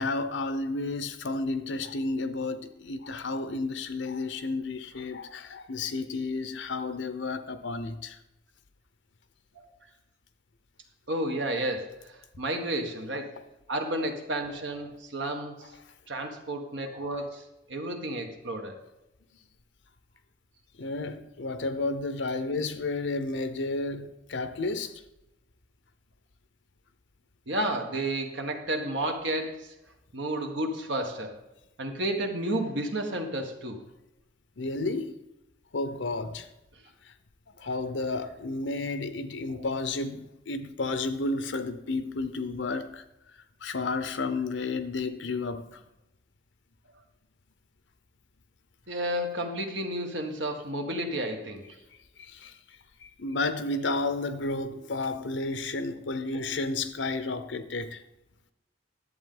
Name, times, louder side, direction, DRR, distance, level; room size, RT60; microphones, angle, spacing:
voice 1, 0.0-8.2 20.8-25.0 34.6-35.2 35.7-36.5 37.0-37.1 37.6-43.0 43.6-45.8 52.2-52.6 53.0-58.0, left 3 dB, 85° left, 0.7 m, -32 dB
voice 2, 11.1-13.4 13.7-15.7 16.1-18.8 27.5-29.7 30.1-31.4 31.8-33.8 36.7-36.8 39.5-39.6 48.9-51.8 56.3-56.4, right 1 dB, 80° right, 1.4 m, -32 dB
11.0 x 7.9 x 3.9 m
head